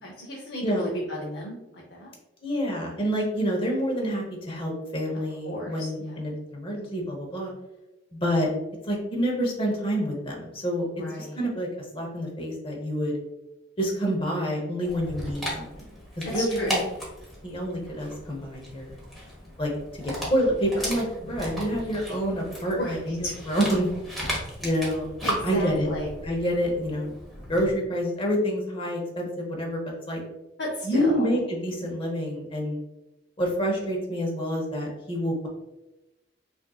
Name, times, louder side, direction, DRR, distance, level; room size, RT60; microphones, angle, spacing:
voice 1, 0.0-2.1 5.4-6.2 11.0-11.4 16.3-16.8 22.8-23.6 25.2-26.1 30.6-31.3, left 1 dB, 65° left, -3 dB, 0.7 m, -33 dB
voice 2, 2.4-7.5 8.1-8.5 8.8-10.9 11.2-11.7 11.9-13.2 13.8-15.7 16.2-16.8 17.4-19.0 19.6-19.7 20.0-23.9 24.6-25.1 25.4-25.9 26.2-27.1 27.5-29.8 30.1-30.2 30.8-32.8 33.4-35.5, equal, 30° left, 0 dB, 1.0 m, -27 dB
Dog, 14.8-27.7, equal, ahead, 1.2 m, -36 dB
5.2 x 2.7 x 2.3 m, 0.98 s
head